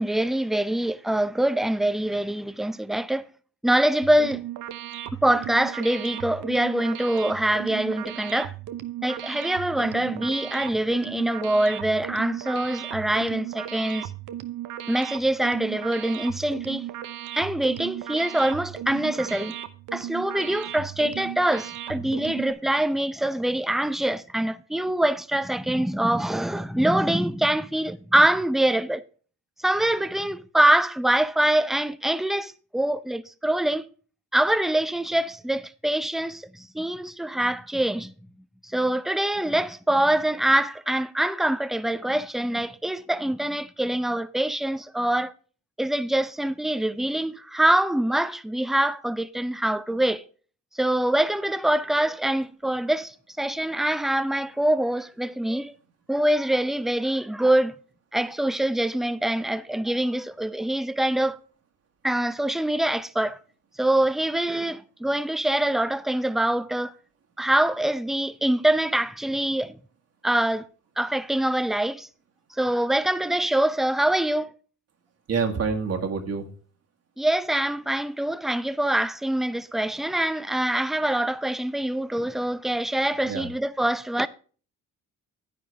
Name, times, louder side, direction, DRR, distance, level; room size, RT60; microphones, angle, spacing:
voice 1, 0.0-3.2 3.6-4.4 5.2-8.5 9.0-14.1 14.9-16.8 17.3-19.5 19.9-29.0 29.6-33.9 34.3-38.1 38.6-45.3 45.8-50.2 50.7-55.7 56.1-57.8 58.1-61.4 62.0-63.4 63.8-66.9 67.4-69.8 70.2-70.7 71.0-72.1 72.6-74.5 77.2-84.3, right 1 dB, ahead, 0.6 m, -24 dB
sound 1, 4.0-22.5, right 12 dB, 85° right, 0.9 m, -36 dB
voice 2, 75.3-76.5 83.2-83.5, right 5 dB, 55° right, 1.9 m, -27 dB
10.0 x 9.2 x 3.4 m
cardioid pair, 90°, 30 cm